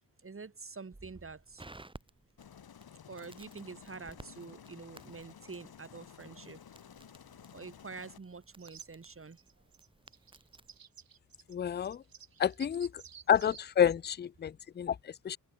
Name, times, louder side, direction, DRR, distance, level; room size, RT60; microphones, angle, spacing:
voice 1, 0.2-1.6 3.1-6.6 7.5-9.4, right 4 dB, 35° right, 3.8 m, -47 dB
Crackle, 0.9-10.8, right 2 dB, 15° right, 1.6 m, -57 dB
Aircraft, 2.4-8.2, left 8 dB, 90° left, 4.8 m, -54 dB
sound 1, 8.6-8.9 9.3-13.6, right 7 dB, 70° right, 4.0 m, -53 dB
voice 2, 11.5-12.0 12.4-13.0 13.3-15.4, left 9 dB, 30° left, 0.4 m, -29 dB
wide cardioid pair, 115°, 36 cm